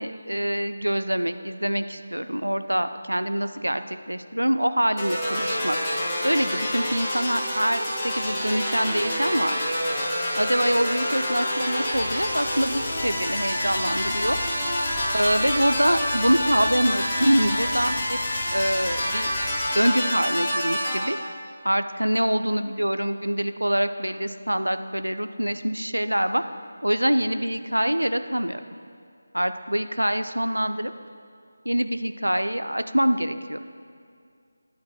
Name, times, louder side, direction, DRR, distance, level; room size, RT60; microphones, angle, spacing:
voice 1, 0.0-5.8 6.2-9.6 10.3-14.4 15.1-18.2 18.5-19.3 19.7-21.2 21.6-26.4 26.8-28.6 29.3-30.9 31.7-33.6, equal, 85° right, 10 dB, 0.4 m, -25 dB
sound 1, 5.0-21.0, equal, 15° left, 1.4 m, -27 dB
Rain, 11.9-19.7, left 2 dB, 45° left, 0.6 m, -36 dB
12.5 x 9.3 x 2.2 m, 2.2 s
figure-of-eight pair, 160°, 0 cm